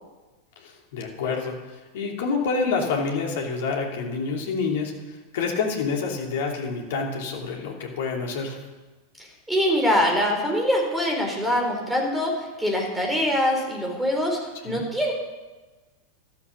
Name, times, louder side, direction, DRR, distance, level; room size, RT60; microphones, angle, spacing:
voice 1, 0.6-1.5 1.9-8.6 14.7-14.8, left 4 dB, 55° left, 1 dB, 3.0 m, -28 dB
voice 2, 9.2-14.4 14.6-15.1, equal, 5° right, 0 dB, 4.3 m, -24 dB
13.0 x 12.5 x 6.9 m, 1.2 s
figure-of-eight pair, 90°, 0 cm